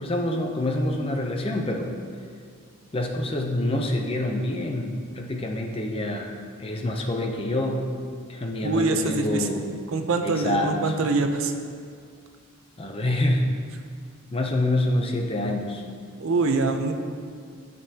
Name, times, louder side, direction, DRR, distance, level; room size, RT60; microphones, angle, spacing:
voice 1, 0.0-1.9 2.9-7.9 8.3-9.6 10.2-11.0 12.8-13.5 14.3-15.8, left 1 dB, 25° left, 2 dB, 0.6 m, -26 dB
voice 2, 8.6-9.5 9.9-11.5 16.2-16.9, right 3 dB, 65° right, 6 dB, 0.6 m, -24 dB
12.0 x 5.3 x 2.8 m, 2.2 s
head